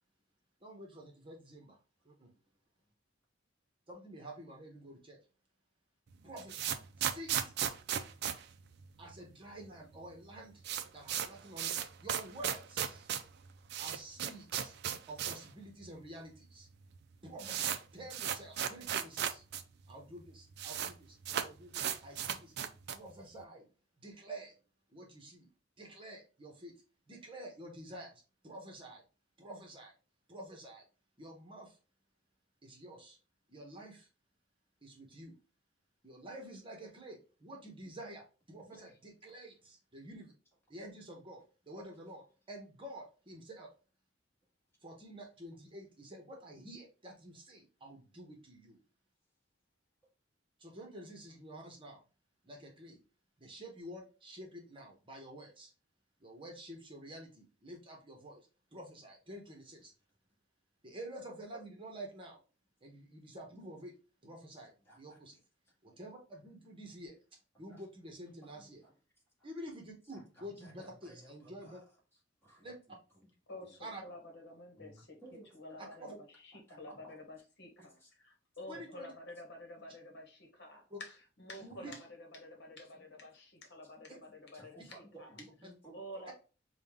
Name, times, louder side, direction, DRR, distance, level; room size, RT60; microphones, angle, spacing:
voice 1, 0.6-1.8 2.0-2.3 3.9-5.2 6.2-7.4 9.0-10.6 10.9-13.1 13.8-14.8 15.1-16.7 17.2-19.4 19.9-22.5 22.9-23.7 24.0-24.5 24.9-25.5 25.8-26.7 27.1-29.0 29.4-29.9 30.3-30.8 31.2-31.8 32.6-33.2 33.5-34.1 34.8-35.3 36.0-40.3 40.7-43.7 44.8-48.8 50.6-52.0 52.4-53.0 53.4-55.7 56.2-58.4 58.7-59.9 60.8-62.4 62.8-63.9 64.2-65.4 65.8-67.2 67.6-68.8 69.4-71.8 72.6-72.7 73.8-74.0 76.0-76.1 78.7-79.1 80.9-81.0 81.6-81.9 84.1-84.2, right 1 dB, 25° right, 0 dB, 1.0 m, -49 dB
sound 1, 6.1-9.4 9.6-9.7 9.9-10.0 10.3-15.5 15.8-15.9 16.6-16.7 16.9-19.6 19.9-20.0 20.2-20.9 21.2-23.1, right 9 dB, 60° right, 0.4 m, -36 dB
voice 2, 64.5-65.2 65.9-66.0 67.7-67.8 68.4-68.9 70.1-71.8 72.4-73.3 74.0-74.2 74.8-75.0 75.2-75.8 76.1-76.2 76.7-77.1 77.8-78.1 81.7-81.8 82.9-83.0 84.5-86.3, right 2 dB, 15° left, -3 dB, 1.6 m, -57 dB
voice 3, 73.5-85.4 85.9-86.3, left 1 dB, 60° left, 2 dB, 1.1 m, -50 dB
5.1 x 2.3 x 3.5 m, 0.34 s
head